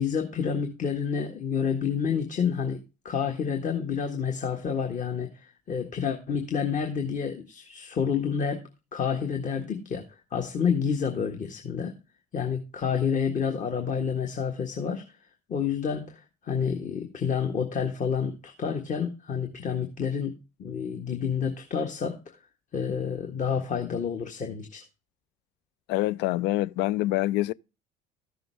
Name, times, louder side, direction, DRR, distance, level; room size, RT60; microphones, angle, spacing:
voice 1, 0.0-2.8 3.0-10.0 10.3-11.9 12.3-15.0 15.5-20.3 20.6-22.2 22.7-24.8, left 6 dB, 40° left, 1.6 m, -29 dB
voice 2, 25.9-27.5, left 16 dB, 55° left, 0.4 m, -26 dB
14.0 x 6.8 x 3.4 m
figure-of-eight pair, 60°, 21 cm